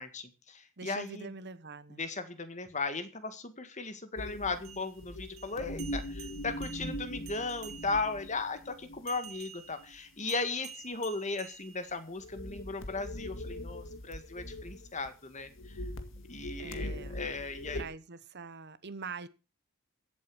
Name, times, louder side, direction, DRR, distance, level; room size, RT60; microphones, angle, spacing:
voice 1, 0.0-1.3 1.9-15.8 16.3-17.9, left 3 dB, 35° left, 1.8 m, -37 dB
voice 2, 0.8-2.0 16.6-17.2 17.7-19.3, right 4 dB, 50° right, 1.0 m, -44 dB
sound 1, 4.2-9.3 9.8-10.0 11.9-12.0 12.2-15.1 15.4-17.8, equal, 60° left, 1.9 m, -41 dB
sound 2, 4.6-8.2 9.1-12.3, right 8 dB, 70° right, 2.3 m, -50 dB
15.5 x 8.4 x 6.2 m
head